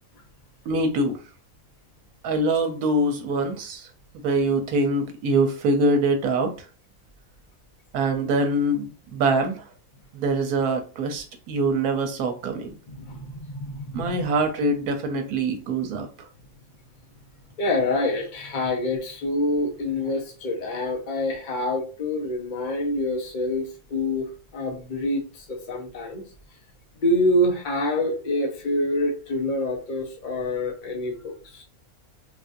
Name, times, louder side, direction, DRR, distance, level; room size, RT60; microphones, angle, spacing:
voice 1, 0.7-1.2 2.2-3.9 4.2-6.5 7.9-9.6 10.1-12.7 13.9-16.1, right 2 dB, 85° right, 1.2 m, -24 dB
voice 2, 12.9-14.2 17.6-26.2 27.0-31.6, left 1 dB, 40° left, 0.8 m, -26 dB
3.4 x 2.5 x 2.6 m
omnidirectional pair, 1.5 m